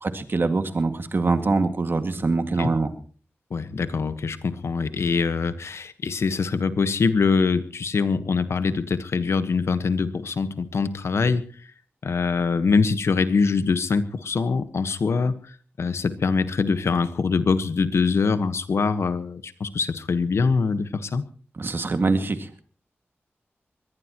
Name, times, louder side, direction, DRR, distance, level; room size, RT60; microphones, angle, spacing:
voice 1, 0.0-2.9 21.6-22.5, right 3 dB, 55° right, 8 dB, 2.0 m, -24 dB
voice 2, 3.5-11.5 12.0-21.2, left 4 dB, 80° left, 12 dB, 1.3 m, -23 dB
23.0 x 18.0 x 3.0 m, 0.42 s
cardioid pair, 65°, 5 cm